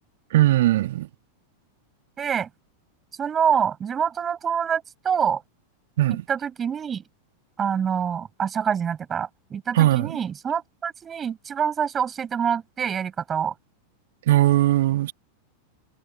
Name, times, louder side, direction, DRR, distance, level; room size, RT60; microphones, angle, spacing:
voice 1, 0.3-1.1 6.0-6.2 9.7-10.2 14.3-15.1, right 15 dB, 55° right, 2.1 m, -19 dB
voice 2, 2.2-2.5 3.2-5.4 6.3-7.0 7.6-13.5, right 7 dB, 20° right, 5.5 m, -26 dB
figure-of-eight pair, 90°, 0 cm